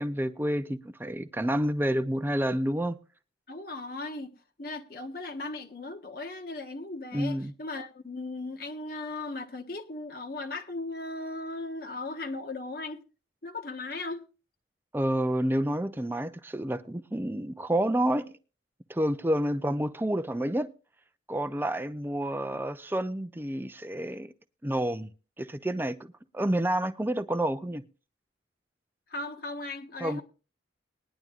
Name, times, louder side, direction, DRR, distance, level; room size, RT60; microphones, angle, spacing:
voice 1, 0.0-3.0 7.1-7.5 14.9-18.3 18.9-20.7 21.3-24.3 24.6-25.1 25.4-27.8 30.0-30.2, right 1 dB, 10° right, 0.5 m, -29 dB
voice 2, 3.5-4.3 4.6-13.0 13.4-14.2 29.1-30.2, left 2 dB, 50° left, 1.3 m, -37 dB
20.0 x 10.5 x 2.4 m
head